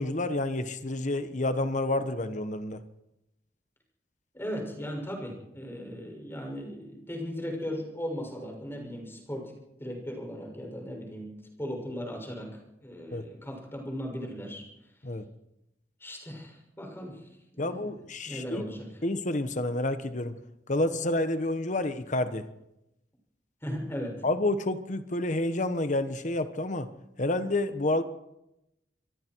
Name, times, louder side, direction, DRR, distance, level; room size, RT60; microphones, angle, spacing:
voice 1, 0.0-2.8 13.1-13.2 15.0-15.2 17.6-18.6 19.0-20.3 20.7-22.4 24.2-26.9 27.2-28.0, left 2 dB, 45° left, 10 dB, 1.3 m, -29 dB
voice 2, 4.3-9.5 9.8-11.3 11.6-12.5 12.8-14.6 16.0-17.2 17.5-17.9 18.3-18.9 23.6-24.1, equal, 15° left, 1 dB, 6.5 m, -37 dB
26.5 x 23.0 x 4.7 m, 0.89 s
head